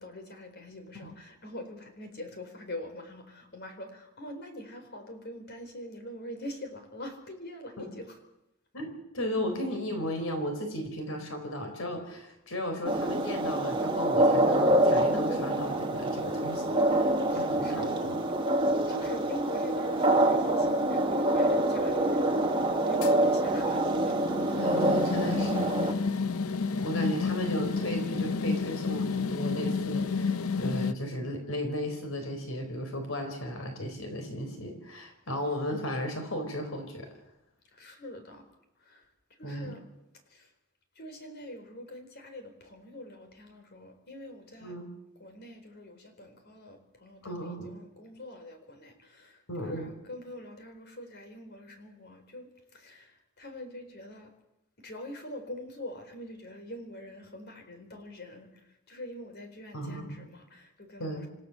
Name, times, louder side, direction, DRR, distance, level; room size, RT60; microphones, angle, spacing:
voice 1, 0.0-8.2 17.3-18.1 18.9-24.2 37.7-38.4 38.8-39.1 39.4-39.8 40.3-40.5 41.0-44.7 45.2-54.3 54.8-61.3, left 1 dB, 50° left, 6 dB, 4.3 m, -44 dB
voice 2, 8.7-18.2 24.6-26.0 26.8-37.1 39.4-39.7 44.6-44.9 47.2-47.8 49.5-49.9 59.7-60.2 61.0-61.3, equal, 70° left, 5 dB, 4.1 m, -35 dB
sound 1, 12.8-25.9, right 1 dB, 25° right, 2.0 m, -26 dB
sound 2, 23.0-30.9, left 4 dB, 90° left, 0.7 m, -31 dB
27.5 x 16.0 x 7.1 m, 0.89 s
head